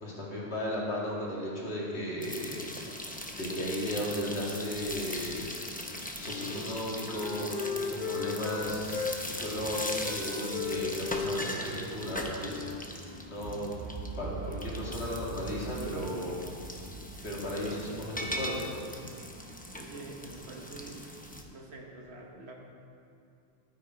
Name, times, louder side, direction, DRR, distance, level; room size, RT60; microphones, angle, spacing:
voice 1, 0.0-2.6 3.3-5.5 6.2-13.7 14.2-16.4 17.2-18.9, equal, 80° left, -4 dB, 2.5 m, -35 dB
sound 1, 2.2-21.4, left 1 dB, 10° left, 0.8 m, -40 dB
Wind instrument woodwind instrument, 6.2-9.2 9.6-13.5, left 6 dB, 50° left, 0.9 m, -37 dB
sound 2, 8.6-19.8, right 5 dB, 50° right, 0.6 m, -46 dB
voice 2, 19.8-21.1 21.5-22.5, right 3 dB, 80° right, 1 dB, 1.4 m, -46 dB
11.5 x 9.2 x 4.9 m, 2.5 s
omnidirectional pair, 1.1 m